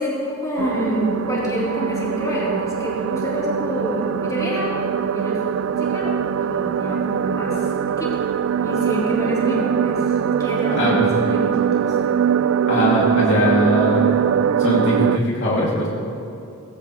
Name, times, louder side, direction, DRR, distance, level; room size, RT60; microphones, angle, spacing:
voice 1, 0.0-4.7 5.1-5.4 5.8-7.6 8.0-8.1 8.6-10.0 10.4-11.9, equal, 15° left, -7 dB, 3.6 m, -27 dB
sound 1, 0.6-15.2, right 8 dB, 65° right, 0.3 m, -22 dB
voice 2, 10.7-11.1 12.7-14.1 14.6-15.9, equal, 55° left, -5 dB, 2.6 m, -20 dB
19.0 x 15.5 x 3.2 m, 2.7 s
head